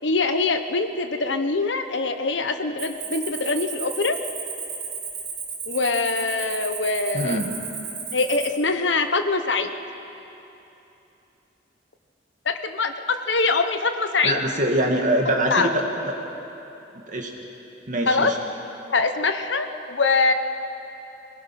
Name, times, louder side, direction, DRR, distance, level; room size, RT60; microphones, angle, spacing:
voice 1, 0.0-4.2 5.7-7.4 8.1-9.7 12.4-12.9 13.3-14.4 15.5-15.7 18.1-18.3 18.9-20.3, left 3 dB, 70° left, 7 dB, 1.2 m, -23 dB
Cricket, 2.8-8.5, right 5 dB, 60° right, 5.0 m, -34 dB
voice 2, 7.1-7.6 14.2-15.8 17.1-17.3 17.9-18.4, right 1 dB, 45° right, 1 dB, 2.0 m, -23 dB
25.0 x 19.0 x 6.0 m, 3.0 s
head